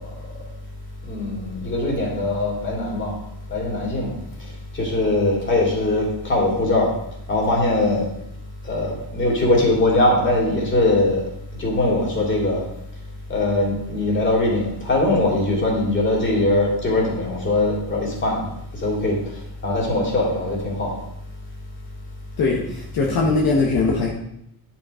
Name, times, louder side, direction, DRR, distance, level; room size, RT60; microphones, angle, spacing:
voice 1, 1.1-3.1 3.5-4.1 4.7-6.9 7.3-8.1 8.7-11.2 11.6-12.6 13.3-18.4 18.8-19.2 19.6-20.9 23.0-23.2, left 2 dB, 30° left, -3 dB, 3.3 m, -21 dB
voice 2, 22.4-24.1, left 3 dB, 65° left, -1 dB, 1.6 m, -20 dB
10.5 x 5.9 x 5.1 m, 0.77 s
cardioid pair, 160°, 38 cm